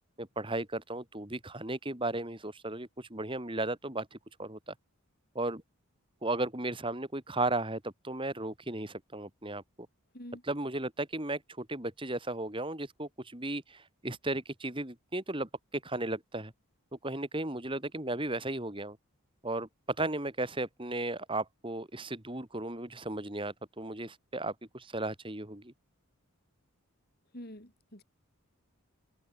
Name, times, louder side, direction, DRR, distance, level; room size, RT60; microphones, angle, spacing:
voice 1, 0.2-4.7 5.3-5.6 6.2-9.6 10.5-16.5 16.9-19.0 19.4-19.7 20.0-25.7, right 2 dB, 25° right, 2.5 m, -35 dB
voice 2, 27.3-28.0, equal, 45° left, 4.8 m, -46 dB
open air
head